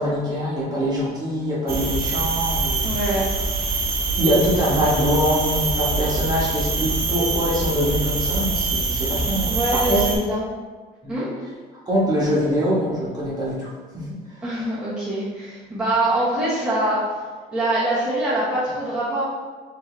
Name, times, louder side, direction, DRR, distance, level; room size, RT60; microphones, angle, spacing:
voice 1, 0.0-2.8 4.2-10.0 11.0-11.2 11.8-13.7 13.9-14.1, equal, 25° right, -7 dB, 1.4 m, -23 dB
sound 1, 1.7-10.2, right 3 dB, 65° right, 0.8 m, -24 dB
voice 2, 2.8-3.3 9.4-10.4 11.1-11.3 14.4-17.1 17.5-19.2, right 1 dB, 5° right, -10 dB, 1.2 m, -24 dB
4.5 x 2.8 x 3.3 m, 1.4 s
cardioid pair, 110°, 17 cm